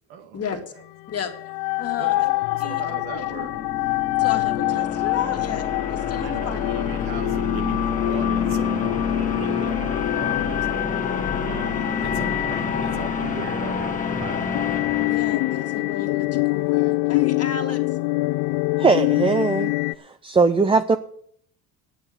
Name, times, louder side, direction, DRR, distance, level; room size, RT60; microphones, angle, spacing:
voice 1, 0.1-0.6 2.0-2.3 2.6-3.5 6.2-10.6 11.5-14.5, right 7 dB, 85° right, 7 dB, 1.8 m, -38 dB
sound 1, 1.1-19.9, left 21 dB, 75° left, 0.5 m, -26 dB
voice 2, 1.8-2.3 2.6-3.5 4.2-6.7 15.0-18.0, left 6 dB, 40° left, 4 dB, 2.1 m, -33 dB
sound 2, 3.0-16.0, left 5 dB, 20° left, 1.6 m, -27 dB
voice 3, 18.8-19.7 20.0-21.0, right 4 dB, 15° right, 10 dB, 0.5 m, -20 dB
9.1 x 8.7 x 7.9 m, 0.63 s
cardioid pair, 115°, 37 cm